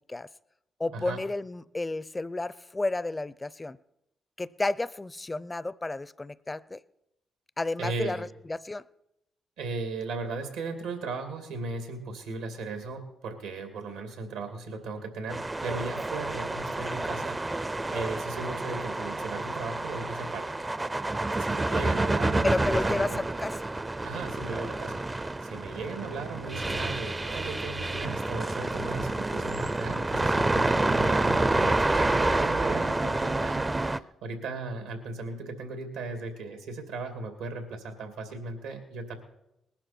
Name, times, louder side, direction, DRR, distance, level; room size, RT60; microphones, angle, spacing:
voice 1, 0.8-3.8 4.4-6.8 7.6-8.8 22.4-23.6, left 2 dB, 25° left, 0.6 m, -31 dB
voice 2, 7.8-8.3 9.6-20.5 21.3-23.2 24.0-39.2, right 3 dB, 85° right, 2.6 m, -37 dB
sound 1, 15.3-34.0, right 2 dB, 20° right, 0.6 m, -28 dB
20.0 x 11.5 x 4.5 m
hypercardioid pair, 50°, 0 cm